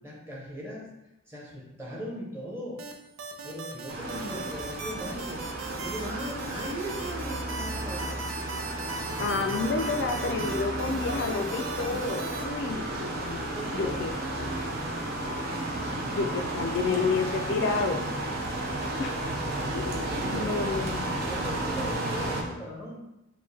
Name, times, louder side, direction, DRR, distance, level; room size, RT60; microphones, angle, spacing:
voice 1, 0.0-0.9 1.3-2.8 3.4-8.3 9.1-10.5 13.2-14.2 15.7-17.1 20.0-20.8 21.3-23.0, equal, 10° right, -5 dB, 1.1 m, -39 dB
sound 1, 2.8-12.4, right 3 dB, 90° right, 0.5 m, -38 dB
sound 2, 3.9-22.4, right 1 dB, 50° right, 0.7 m, -33 dB
voice 2, 9.2-13.4 13.7-14.1 14.4-14.5 16.2-18.1 19.0-19.2 19.7-21.2, left 4 dB, 60° left, 5 dB, 0.3 m, -30 dB
5.2 x 2.2 x 3.3 m, 0.92 s
head